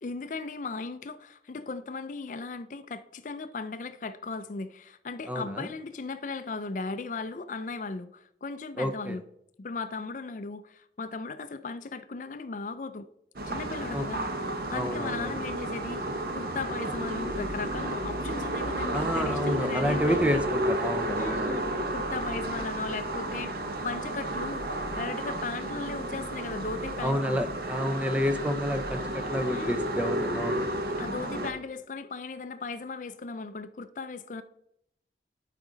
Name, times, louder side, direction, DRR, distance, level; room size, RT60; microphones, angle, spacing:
voice 1, 0.0-9.2 9.6-13.1 13.5-16.0 16.3-20.4 21.2-23.5 23.8-27.4 29.5-29.9 31.0-34.4, left 4 dB, 45° left, 0.4 m, -37 dB
voice 2, 5.3-5.7 8.8-9.2 13.9-14.0 14.7-15.4 18.9-21.6 27.0-30.7, equal, 10° right, 0.6 m, -29 dB
sound 1, 13.4-31.5, right 1 dB, 55° right, 0.8 m, -32 dB
11.5 x 5.0 x 3.9 m
head